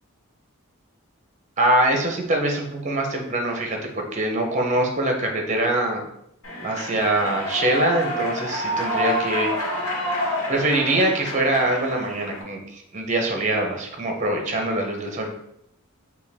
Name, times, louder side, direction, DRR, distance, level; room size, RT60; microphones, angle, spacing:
voice 1, 1.6-6.0 6.6-9.5 10.5-12.6 12.9-15.3, right 1 dB, 35° right, 2 dB, 0.7 m, -23 dB
Human voice / Clapping / Cheering, 6.4-12.4, left 1 dB, 85° left, 1.2 m, -28 dB
5.2 x 2.3 x 3.4 m, 0.75 s
head